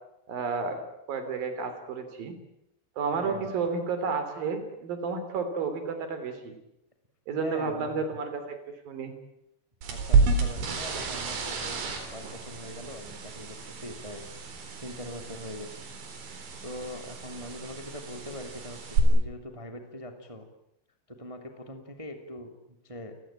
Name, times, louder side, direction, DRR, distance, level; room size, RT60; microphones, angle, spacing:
voice 1, 0.3-0.8 1.1-2.4 3.0-6.5 7.3-9.1, right 4 dB, 50° right, 9 dB, 4.7 m, -31 dB
voice 2, 3.1-3.5 7.3-8.0 9.9-14.2 14.8-15.7 16.6-20.5 21.1-23.1, left 1 dB, 30° right, 5 dB, 0.5 m, -42 dB
sound 1, 9.8-19.0, right 5 dB, 70° right, 6.3 m, -30 dB
30.0 x 19.0 x 8.9 m, 0.80 s
omnidirectional pair, 5.6 m